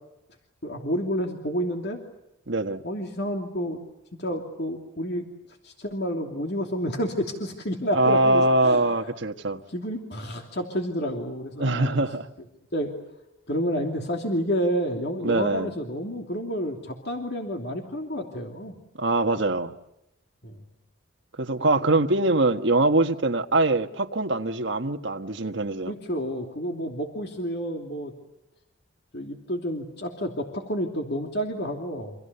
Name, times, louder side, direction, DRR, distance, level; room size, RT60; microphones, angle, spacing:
voice 1, 0.6-2.0 2.8-3.8 4.2-5.3 5.6-8.8 9.7-12.0 12.7-12.9 13.5-18.7 20.4-20.6 25.9-28.1 29.1-32.1, equal, 55° left, 2.9 m, -30 dB
voice 2, 2.5-2.8 7.9-9.6 11.6-12.3 15.2-15.7 19.0-19.7 21.4-25.9, right 2 dB, 60° right, 1.4 m, -23 dB
29.0 x 26.0 x 6.9 m
head